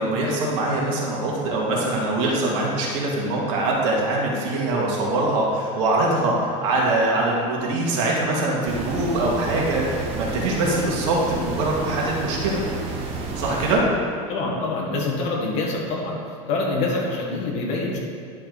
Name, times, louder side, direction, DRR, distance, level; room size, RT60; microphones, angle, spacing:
voice 1, 0.0-12.7 13.4-13.8, right 2 dB, 65° right, -3 dB, 2.1 m, -23 dB
sound 1, 8.6-13.8, right 3 dB, 35° right, 1.1 m, -31 dB
voice 2, 14.3-16.2 16.5-18.0, left 3 dB, 40° left, -2 dB, 1.6 m, -25 dB
10.5 x 6.0 x 4.1 m, 2.3 s
supercardioid pair, 160°, 17 cm